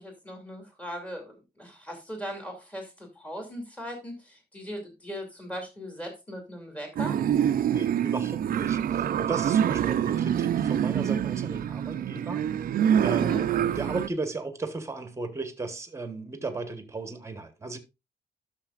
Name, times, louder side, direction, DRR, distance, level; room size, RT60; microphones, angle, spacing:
voice 1, 0.0-7.2 13.2-13.4, equal, 10° left, 2.6 m, -39 dB
sound 1, 7.0-14.1, right 9 dB, 60° right, 0.5 m, -26 dB
voice 2, 7.7-12.5 13.0-13.5 13.7-17.8, right 3 dB, 15° right, 1.2 m, -35 dB
13.0 x 6.6 x 2.4 m
wide cardioid pair, 150°, 17 cm